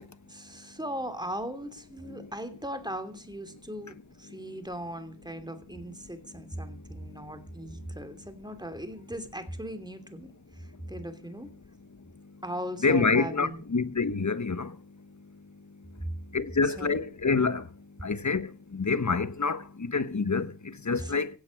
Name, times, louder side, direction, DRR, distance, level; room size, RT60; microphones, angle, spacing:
voice 1, 0.3-11.5 12.4-13.6 16.6-17.0 20.9-21.2, equal, 10° right, 2.8 m, -38 dB
voice 2, 12.8-14.7 16.3-17.6 18.0-21.3, left 4 dB, 40° left, 1.3 m, -27 dB
17.0 x 8.5 x 6.5 m
wide cardioid pair, 60°, 43 cm